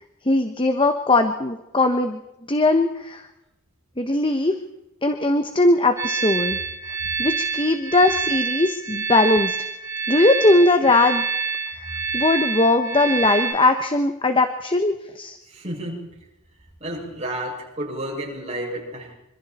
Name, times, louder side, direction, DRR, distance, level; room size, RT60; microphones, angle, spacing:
voice 1, 0.2-2.2 2.5-3.3 4.0-4.5 5.0-6.6 6.8-6.9 7.2-9.6 10.1-11.2 11.7-11.8 12.1-15.4, left 2 dB, 20° left, 7 dB, 1.3 m, -19 dB
sound 1, 6.0-13.5, right 4 dB, 15° right, 7.5 m, -27 dB
voice 2, 15.5-16.1 16.8-19.1, right 1 dB, 30° right, -1 dB, 7.1 m, -31 dB
26.5 x 26.0 x 4.5 m, 0.90 s
head